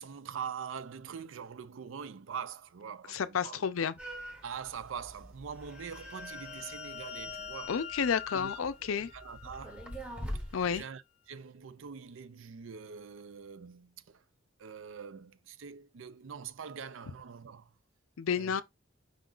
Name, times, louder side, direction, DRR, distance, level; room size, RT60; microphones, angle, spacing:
voice 1, 0.0-3.6 4.4-7.8 8.3-9.9 10.7-11.0 11.3-14.2 14.6-17.7 18.3-18.6, right 7 dB, 75° right, 0.5 m, -43 dB
voice 2, 3.1-3.9 7.7-9.1 10.5-10.8 18.2-18.6, left 6 dB, 90° left, 0.5 m, -31 dB
sound 1, 4.0-10.8, equal, 5° right, 1.1 m, -45 dB
sound 2, 5.6-10.1, left 8 dB, 30° left, 0.6 m, -45 dB
5.1 x 2.4 x 3.7 m
head